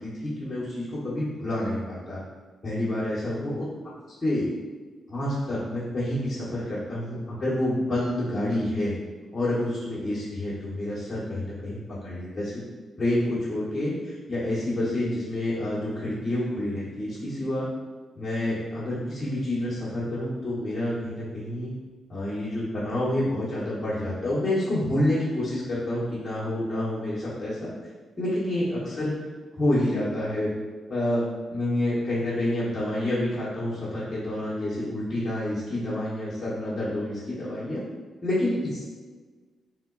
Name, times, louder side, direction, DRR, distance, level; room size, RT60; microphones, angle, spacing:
voice 1, 0.0-2.2 2.6-3.7 4.1-4.5 5.1-8.9 9.3-12.6 13.0-17.7 18.1-21.7 22.1-27.7 28.2-29.1 29.6-30.5 30.9-31.2 31.5-37.8 38.2-38.8, left 1 dB, 25° left, -11 dB, 1.0 m, -28 dB
3.5 x 2.9 x 3.7 m, 1.4 s
cardioid pair, 125°, 0 cm